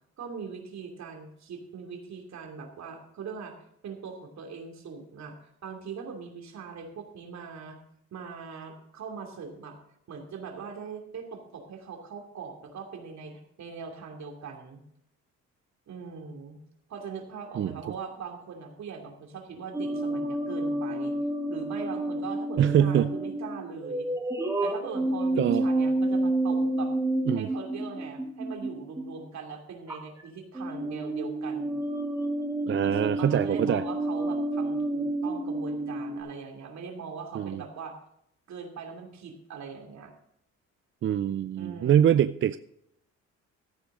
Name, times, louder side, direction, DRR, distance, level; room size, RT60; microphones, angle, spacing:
voice 1, 0.2-3.6 3.8-7.8 8.1-9.8 10.1-14.8 15.9-16.6 16.9-21.1 21.5-24.1 24.6-26.9 27.3-31.7 32.8-38.0 38.5-40.1 41.5-42.3, right 5 dB, 65° right, 3 dB, 2.8 m, -41 dB
sound 1, 19.7-29.1 29.9-30.2 30.5-36.2, right 1 dB, 10° right, 3.2 m, -29 dB
voice 2, 22.6-23.1 25.4-25.7 27.3-27.5 32.7-33.8 37.3-37.6 41.0-42.6, right 10 dB, 40° right, 13 dB, 0.4 m, -24 dB
14.0 x 9.5 x 3.8 m, 0.76 s
cardioid pair, 90°, 30 cm